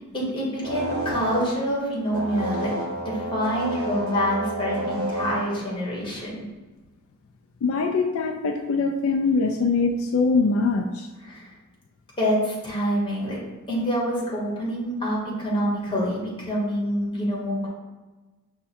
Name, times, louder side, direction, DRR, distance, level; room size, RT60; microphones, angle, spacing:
voice 1, 0.1-2.7 3.0-6.4 11.2-11.5 12.2-13.4 13.7-17.7, equal, 25° left, -5 dB, 1.2 m, -26 dB
sound 1, 0.6-1.7 2.0-5.6, right 2 dB, 70° right, 0.7 m, -31 dB
voice 2, 7.6-11.1, left 4 dB, 70° left, 4 dB, 0.3 m, -23 dB
5.6 x 2.1 x 4.3 m, 1.2 s
head